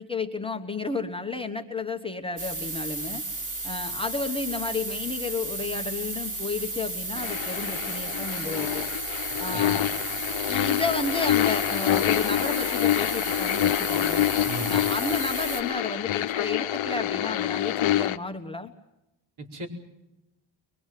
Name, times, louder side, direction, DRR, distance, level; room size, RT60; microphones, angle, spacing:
voice 1, 0.0-3.2 3.6-8.8 9.4-9.9 10.5-14.3 14.7-18.7, left 3 dB, 10° left, 3 dB, 1.1 m, -32 dB
sound 1, 2.4-15.6, right 2 dB, 40° right, 3.4 m, -33 dB
sound 2, 7.2-18.2, left 13 dB, 65° left, 0.9 m, -26 dB
voice 2, 9.5-9.8 14.5-14.8 19.4-19.7, right 1 dB, 70° right, 1 dB, 5.0 m, -36 dB
23.5 x 22.5 x 7.5 m, 0.92 s
wide cardioid pair, 175°, 50 cm